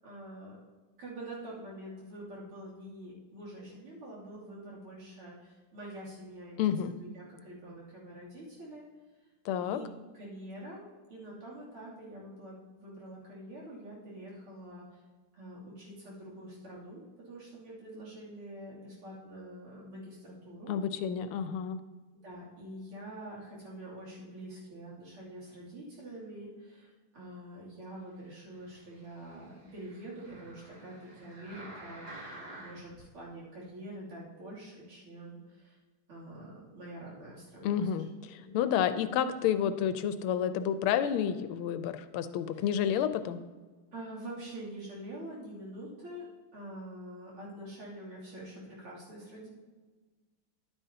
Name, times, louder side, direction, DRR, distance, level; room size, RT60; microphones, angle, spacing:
voice 1, 0.0-0.6 1.0-8.9 9.6-9.9 10.1-15.0 15.3-20.8 22.2-32.1 32.5-35.8 36.1-38.1 38.4-38.6 42.5-42.7 43.9-46.3 46.5-49.5, right 1 dB, 80° right, -7 dB, 3.7 m, -46 dB
voice 2, 6.6-6.9 9.5-9.8 20.7-21.8 37.6-38.1 38.5-43.4, left 9 dB, 80° left, 11 dB, 1.5 m, -30 dB
sound 1, 28.4-33.0 33.6-33.7, right 1 dB, 60° right, 3.3 m, -50 dB
11.0 x 9.0 x 2.8 m, 1.3 s
omnidirectional pair, 2.4 m